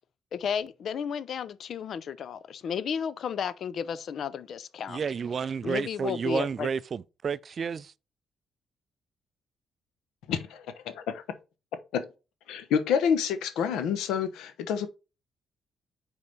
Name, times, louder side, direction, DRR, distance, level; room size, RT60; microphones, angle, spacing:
voice 1, 0.3-5.0 5.6-6.7, left 7 dB, 60° left, 0.6 m, -33 dB
voice 2, 4.9-7.9, right 6 dB, 45° right, 0.4 m, -31 dB
voice 3, 10.3-11.2 11.9-12.1 12.5-14.9, left 7 dB, 90° left, 1.0 m, -28 dB
5.5 x 4.7 x 5.3 m
cardioid pair, 90°, 0 cm